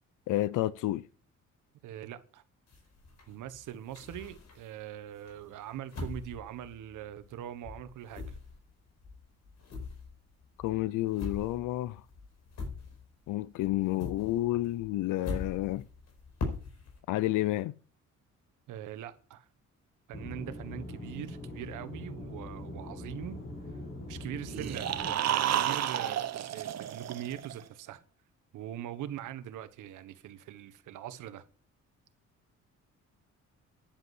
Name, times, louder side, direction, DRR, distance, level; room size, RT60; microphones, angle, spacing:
voice 1, 0.3-1.0 10.6-12.0 13.3-15.8 17.1-17.7, left 16 dB, 85° left, 0.6 m, -30 dB
voice 2, 1.8-2.4 3.3-8.4 18.7-19.5 20.1-23.4 24.1-28.0 28.5-31.4, right 11 dB, 85° right, 1.3 m, -42 dB
sound 1, 2.7-4.8 5.3-7.4 7.6-13.3 13.6-17.0, left 3 dB, 60° left, 5.0 m, -42 dB
Aircraft / Engine, 20.1-25.1, left 2 dB, 45° left, 6.8 m, -42 dB
sound 2, 24.5-27.6, right 11 dB, 60° right, 1.0 m, -31 dB
10.5 x 8.2 x 7.7 m
cardioid pair, 90°, 30 cm